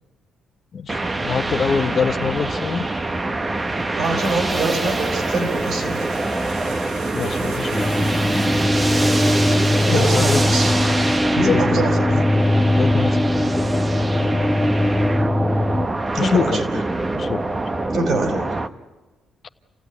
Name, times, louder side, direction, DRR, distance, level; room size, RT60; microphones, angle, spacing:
voice 1, 0.7-2.9 7.1-7.9 9.8-10.4 11.4-12.2 12.8-13.2 16.2-16.6 17.1-17.4, left 6 dB, 50° left, 7 dB, 1.1 m, -24 dB
sound 1, 0.9-18.7, right 2 dB, 25° right, 1.0 m, -25 dB
voice 2, 3.9-6.0 9.5-10.7 11.3-12.2 16.1-16.6 17.9-18.4, right 2 dB, 65° right, 5 dB, 4.9 m, -24 dB
sound 2, 4.0-11.3 11.6-11.7, right 3 dB, 85° right, 5.9 m, -38 dB
sound 3, 7.7-15.9, left 1 dB, 5° left, 1.4 m, -20 dB
28.5 x 16.0 x 9.7 m, 1.2 s
cardioid pair, 90°, 0 cm